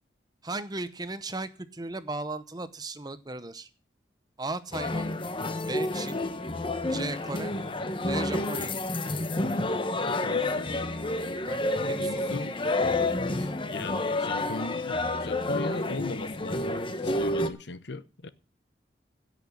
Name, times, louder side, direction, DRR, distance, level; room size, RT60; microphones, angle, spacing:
voice 1, 0.4-3.7 4.4-5.1 5.7-6.2 6.8-7.5 8.1-8.8 11.5-12.2, right 2 dB, 20° right, 0.8 m, -36 dB
sound 1, 4.7-17.5, left 2 dB, 30° left, 1.0 m, -29 dB
voice 2, 10.1-10.8 12.0-12.6 13.4-18.3, left 3 dB, 70° left, 0.9 m, -38 dB
16.5 x 5.9 x 7.2 m
head